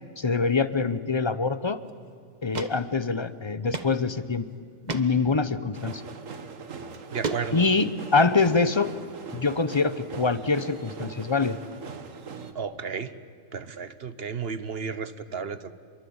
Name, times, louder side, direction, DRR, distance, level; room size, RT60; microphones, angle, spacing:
voice 1, 0.2-1.8 2.4-4.5 4.9-6.0 7.5-8.9 9.3-11.6, left 4 dB, 25° left, 13 dB, 0.8 m, -24 dB
sound 1, 1.9-2.0 2.5-2.7 3.0-3.1 3.7-3.9 4.3-4.4 4.9-5.0 6.2-6.4 6.9-7.8, right 4 dB, 35° right, 1.4 m, -32 dB
sound 2, 5.7-12.5, right 5 dB, 85° right, 1.7 m, -41 dB
voice 2, 7.1-7.6 12.4-13.1 13.5-15.7, right 6 dB, 55° right, 13 dB, 1.3 m, -33 dB
27.5 x 22.5 x 8.8 m, 2.1 s
omnidirectional pair, 1.3 m